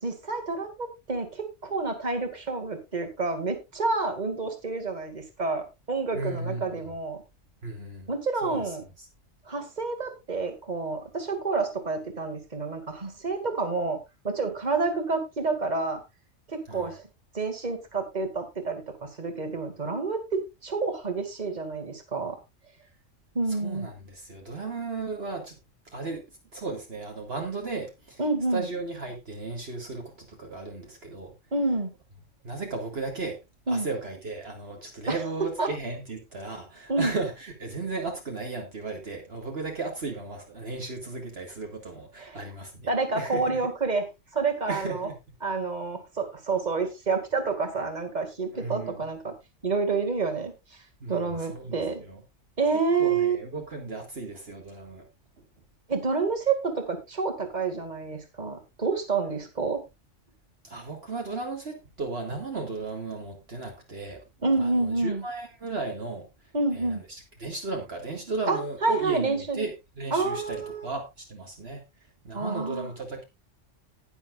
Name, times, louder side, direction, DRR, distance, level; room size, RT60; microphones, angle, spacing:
voice 1, 0.0-7.2 8.1-8.8 9.5-16.0 16.5-17.0 17.3-22.4 23.3-23.9 28.2-28.7 31.5-31.9 33.7-33.9 35.1-35.2 35.6-35.7 36.9-37.1 42.2-42.4 42.9-44.1 44.3-45.1 45.4-49.3 49.6-50.5 51.1-52.0 52.6-53.4 55.9-59.8 64.4-65.2 66.5-67.0 68.5-69.7 70.1-70.9 72.3-72.9, right 4 dB, 35° right, 4 dB, 2.3 m, -28 dB
voice 2, 6.1-6.9 7.6-8.1 8.4-8.6 16.7-17.0 23.5-25.6 25.9-26.2 26.5-28.2 28.5-31.3 32.4-33.4 33.7-42.9 43.1-43.7 44.7-45.2 48.5-49.1 51.0-52.2 53.0-55.1 60.6-64.2 64.6-66.3 66.7-71.8 72.2-73.2, right 3 dB, 55° right, 2 dB, 2.0 m, -35 dB
19.5 x 7.2 x 2.4 m, 0.23 s
omnidirectional pair, 1.3 m